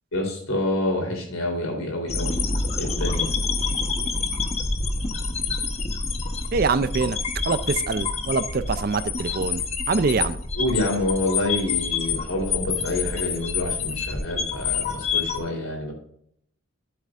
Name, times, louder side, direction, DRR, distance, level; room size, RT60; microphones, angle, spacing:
voice 1, 0.1-2.4 2.7-3.3 10.5-15.9, left 1 dB, 80° left, 3.5 m, -27 dB
sound 1, 2.1-15.4, left 4 dB, 30° left, 1.0 m, -27 dB
voice 2, 6.5-7.2 7.5-10.4, right 4 dB, 45° right, 0.4 m, -24 dB
11.5 x 7.7 x 2.5 m
head